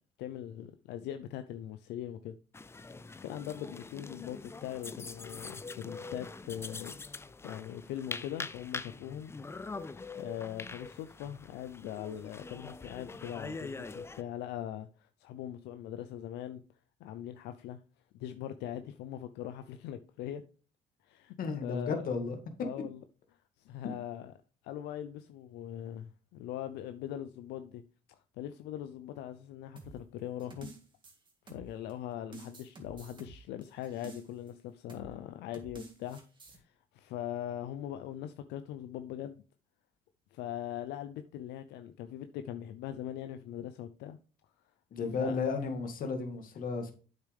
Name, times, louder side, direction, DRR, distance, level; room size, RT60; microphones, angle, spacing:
voice 1, 0.2-2.3 2.8-2.9 3.2-6.9 7.4-9.3 10.1-16.6 17.0-17.8 18.1-20.4 21.0-21.3 21.6-22.1 22.6-23.0 23.6-24.3 24.6-27.8 28.1-30.7 31.5-36.2 36.5-39.4 40.3-44.2 45.2-45.4, left 11 dB, 85° left, 0.6 m, -41 dB
sound 1, 2.5-14.2, left 3 dB, 15° left, 0.5 m, -44 dB
voice 2, 21.4-22.4 44.9-47.0, left 4 dB, 55° left, 2.1 m, -33 dB
sound 2, 29.8-31.9 32.3-34.5 34.9-35.1 35.5-36.6, right 3 dB, 30° right, 2.1 m, -50 dB
8.3 x 6.6 x 3.4 m
cardioid pair, 110°, 17 cm